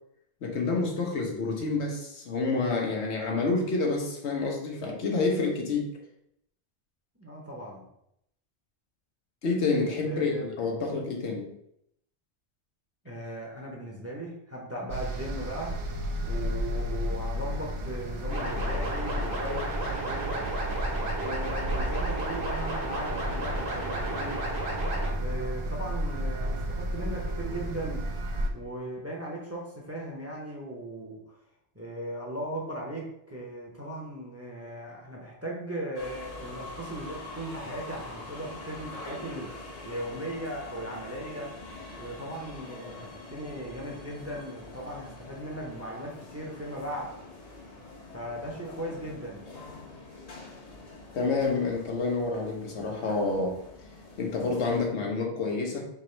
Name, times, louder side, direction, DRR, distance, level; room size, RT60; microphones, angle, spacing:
voice 1, 0.4-6.0 9.4-11.5 51.1-53.6 54.2-55.9, left 3 dB, 75° left, 1 dB, 1.1 m, -28 dB
voice 2, 7.2-7.8 10.0-10.4 13.0-15.7 16.2-20.5 21.1-24.5 25.2-28.0 28.5-31.2 31.7-41.5 42.0-47.1 48.1-49.5, right 1 dB, 15° right, -2 dB, 0.7 m, -38 dB
sound 1, 14.9-28.5, equal, 50° right, 0.4 m, -32 dB
sound 2, 18.3-25.1, right 1 dB, 65° right, 1.5 m, -34 dB
sound 3, 35.9-54.9, left 2 dB, 40° left, 0.8 m, -45 dB
3.5 x 3.0 x 4.3 m, 0.76 s
omnidirectional pair, 1.1 m